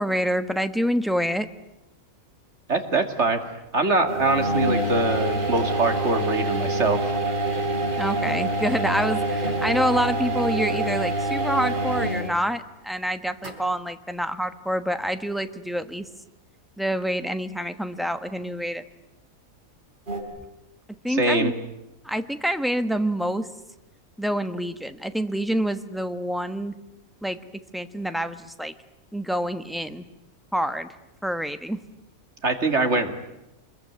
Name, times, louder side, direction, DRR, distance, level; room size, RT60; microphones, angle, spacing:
voice 1, 0.0-1.5 7.9-16.1 16.8-18.8 21.0-21.5 22.0-23.5 24.2-26.7 27.2-27.4 27.7-28.7 29.1-30.0 30.5-30.9 31.2-31.8, equal, ahead, 9 dB, 1.1 m, -27 dB
voice 2, 2.7-3.4 3.7-7.0 21.1-21.5 32.4-33.2, right 2 dB, 50° right, 6 dB, 2.7 m, -23 dB
sound 1, 4.1-12.4 13.4-13.5 20.1-20.2, right 2 dB, 35° right, 3.9 m, -26 dB
26.5 x 22.0 x 9.5 m, 0.92 s
omnidirectional pair, 1.5 m